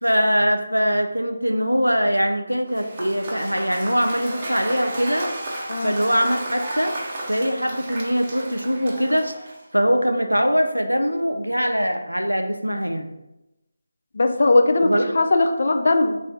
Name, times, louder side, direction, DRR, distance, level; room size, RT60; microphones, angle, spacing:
voice 1, 0.0-5.3 5.8-6.9 7.3-9.3 9.7-13.1 14.8-15.1, equal, 90° right, 5 dB, 0.4 m, -22 dB
Cheering / Applause / Crowd, 2.7-9.8, right 1 dB, 25° right, 0.6 m, -33 dB
voice 2, 5.7-6.0 14.1-16.2, left 2 dB, 50° left, 6 dB, 0.3 m, -19 dB
3.4 x 2.5 x 3.3 m, 0.94 s
figure-of-eight pair, 155°, 0 cm